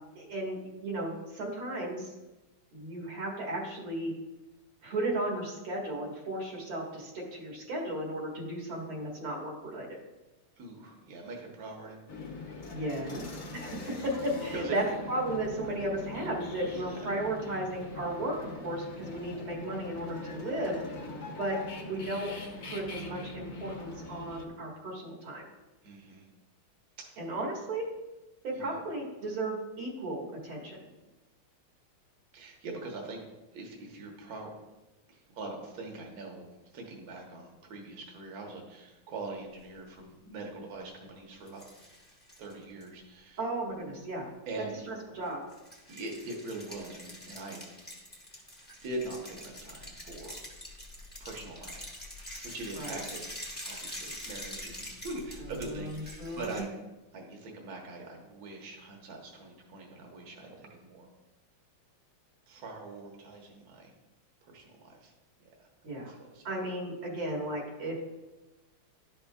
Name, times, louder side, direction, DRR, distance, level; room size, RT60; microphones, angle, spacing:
voice 1, 0.2-2.1 2.7-4.1 4.8-10.0 12.7-13.3 13.5-20.8 21.4-22.3 22.6-25.5 27.2-27.9 28.4-30.9 43.4-44.3 44.9-45.4 52.7-53.0 55.7-56.6 65.8-66.1 66.4-68.0, right 1 dB, 75° right, -2 dB, 2.4 m, -35 dB
voice 2, 10.6-12.0 14.5-14.8 16.7-17.0 25.8-26.2 27.0-27.2 28.5-28.7 32.3-33.2 33.5-34.5 35.1-41.6 42.4-43.4 44.5-44.8 45.9-47.6 48.8-50.4 50.6-50.8 51.2-53.3 53.6-56.8 57.1-61.1 62.5-63.9 64.4-65.1 65.4-65.7 66.1-66.4, right 2 dB, 50° right, 0 dB, 1.4 m, -42 dB
sound 1, 12.1-24.5, left 3 dB, 55° left, 1.3 m, -43 dB
sound 2, 41.5-42.9 45.5-56.6, left 1 dB, 5° left, 0.8 m, -45 dB
11.5 x 5.4 x 2.3 m, 1.1 s
omnidirectional pair, 2.3 m